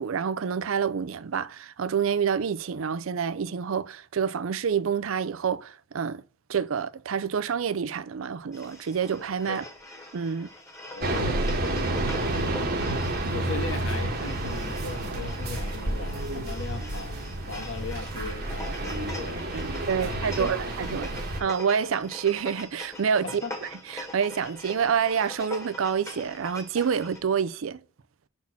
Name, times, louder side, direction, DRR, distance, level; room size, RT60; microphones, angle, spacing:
voice 1, 0.0-6.2 6.5-9.6 10.1-10.5 19.3-21.1 21.4-27.8, right 7 dB, 75° right, 0.5 m, -28 dB
sound 1, 8.5-27.2, left 1 dB, 15° left, 1.4 m, -43 dB
voice 2, 10.8-20.7 21.1-21.3 23.2-23.5, left 3 dB, 70° left, 1.5 m, -38 dB
sound 2, 11.0-21.4, right 1 dB, 50° right, 1.2 m, -30 dB
5.9 x 4.3 x 5.6 m
head